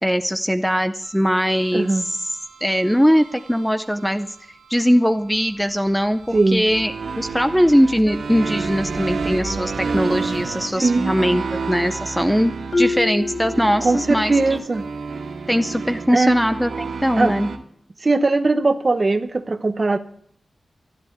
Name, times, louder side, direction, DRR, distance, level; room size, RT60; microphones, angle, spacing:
voice 1, 0.0-1.9 2.6-4.4 4.7-12.5 12.8-14.6 15.5-17.5, equal, ahead, 0.5 m, -20 dB
sound 1, 1.0-17.6, right 4 dB, 85° right, 2.0 m, -31 dB
voice 2, 1.7-2.0 6.3-6.7 10.8-11.4 13.8-14.8 16.1-16.4 17.2-17.3 18.0-20.0, right 3 dB, 30° right, 0.8 m, -19 dB
sound 2, 5.2-10.9, right 3 dB, 60° right, 2.2 m, -38 dB
Marimba xylophone, 12.7-14.5, left 3 dB, 30° left, 1.0 m, -25 dB
12.5 x 11.5 x 8.4 m
wide cardioid pair, 175°, 0 cm